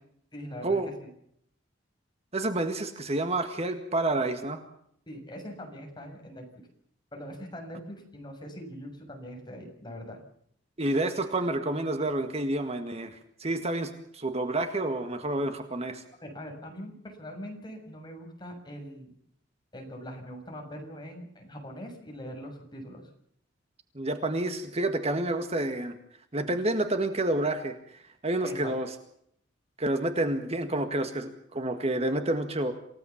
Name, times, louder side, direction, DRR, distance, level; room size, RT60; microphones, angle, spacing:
voice 1, 0.3-1.1 5.1-6.5 7.1-10.2 16.2-19.1 19.7-23.1 28.4-28.7, equal, 25° left, 2 dB, 7.0 m, -42 dB
voice 2, 2.3-4.6 10.8-16.0 24.0-25.9 26.3-28.9 29.8-32.7, right 2 dB, 35° right, 7 dB, 1.9 m, -29 dB
28.0 x 17.0 x 7.2 m, 0.69 s
head